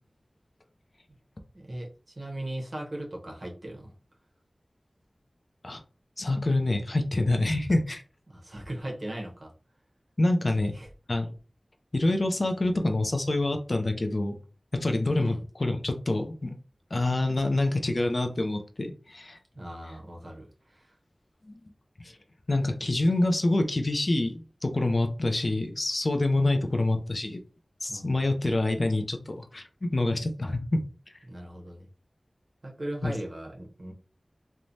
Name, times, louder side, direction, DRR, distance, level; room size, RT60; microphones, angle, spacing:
voice 1, 1.5-3.9 8.3-9.5 10.5-10.9 15.2-15.4 19.5-20.9 27.9-28.4 31.2-31.9 32.6-33.9, right 1 dB, 55° right, 0.9 m, -39 dB
voice 2, 6.2-8.0 10.2-10.8 11.1-11.3 11.9-14.3 14.7-16.6 16.9-19.4 21.4-21.5 22.0-22.1 22.5-27.4 27.8-30.8 33.0-33.1, left 2 dB, 50° left, 0.4 m, -26 dB
3.1 x 2.1 x 2.6 m
wide cardioid pair, 65°, 0 cm